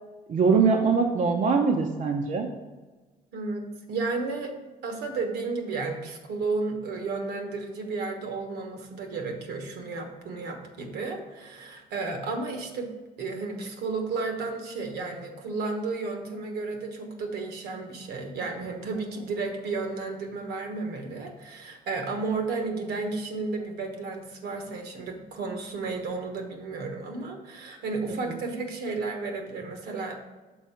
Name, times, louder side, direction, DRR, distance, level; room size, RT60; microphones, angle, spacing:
voice 1, 0.3-2.5, right 5 dB, 45° right, 2 dB, 0.7 m, -22 dB
voice 2, 3.3-4.5 4.8-30.2, right 3 dB, 75° right, 4 dB, 1.3 m, -33 dB
6.3 x 4.0 x 5.7 m, 1.2 s
cardioid pair, 110°, 17 cm